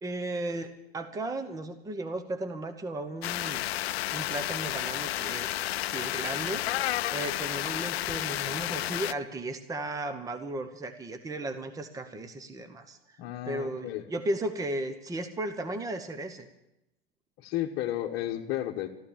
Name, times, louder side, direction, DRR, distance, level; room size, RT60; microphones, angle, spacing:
voice 1, 0.0-3.6 3.9-5.5 5.8-6.6 7.1-13.2 13.5-16.5, right 2 dB, 10° right, 9 dB, 1.0 m, -35 dB
sound 1, 3.2-9.1, left 14 dB, 85° left, 0.5 m, -31 dB
voice 2, 13.2-14.1 17.4-18.9, left 13 dB, 45° left, -1 dB, 1.3 m, -33 dB
13.5 x 12.0 x 7.3 m, 0.88 s
hypercardioid pair, 120°, 30 cm